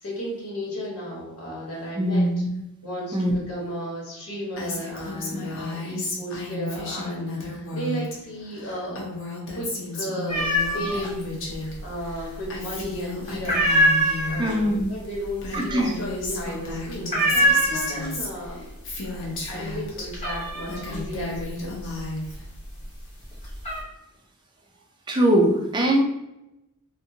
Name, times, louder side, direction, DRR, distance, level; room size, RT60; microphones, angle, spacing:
voice 1, 0.0-2.3 2.8-9.0 9.5-11.3 11.6-13.7 14.0-18.6 19.1-22.0, equal, 80° left, -5 dB, 1.2 m, -34 dB
voice 2, 2.0-2.5 3.1-3.3 14.4-14.9 15.5-15.9 25.1-26.0, right 1 dB, 20° right, 1 dB, 0.4 m, -21 dB
Female speech woman speaking, 4.6-8.2 8.4-11.7 12.0-14.4 15.0-15.1 15.4-20.1 20.5-22.4, left 2 dB, 60° left, 0.7 m, -33 dB
Cat Meow, 10.3-11.1 11.4-12.2 12.5-12.9 13.3-18.4 18.7-19.2 19.6-22.7 23.2-23.8, equal, 30° left, 0.9 m, -24 dB
2.6 x 2.5 x 2.7 m, 0.90 s
head